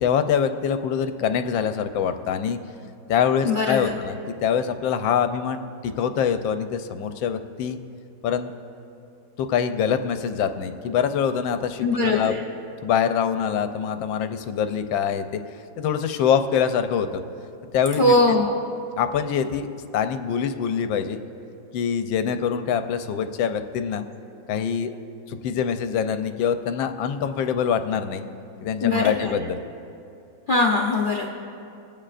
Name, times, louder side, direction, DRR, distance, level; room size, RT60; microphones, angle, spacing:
voice 1, 0.0-2.6 3.1-7.8 8.2-8.5 9.4-12.3 12.8-15.4 15.8-17.2 17.7-18.1 19.0-19.7 19.9-21.2 21.7-24.0 24.5-25.0 25.3-28.2 28.6-29.6, left 7 dB, 85° left, 9 dB, 1.3 m, -24 dB
voice 2, 3.4-3.9 11.8-12.3 18.0-18.5 28.8-29.3 30.5-31.3, left 2 dB, 70° left, -1 dB, 0.4 m, -21 dB
25.5 x 8.9 x 2.5 m, 2.6 s
omnidirectional pair, 2.1 m